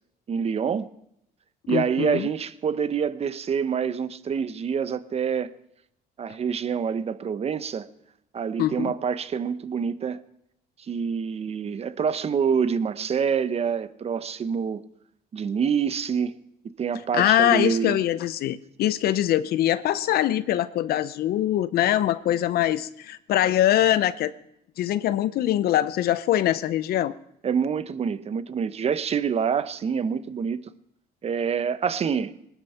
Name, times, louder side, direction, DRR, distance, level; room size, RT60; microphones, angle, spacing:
voice 1, 0.3-0.9 1.7-5.5 6.2-7.9 8.3-10.2 10.8-14.8 15.3-16.4 16.8-18.0 27.4-30.7 31.2-32.3, right 7 dB, 35° right, 0.9 m, -26 dB
voice 2, 1.7-2.3 8.6-8.9 17.1-24.3 24.8-27.1, left 12 dB, 65° left, 0.6 m, -23 dB
19.5 x 12.0 x 5.7 m
cardioid pair, 110°, 17 cm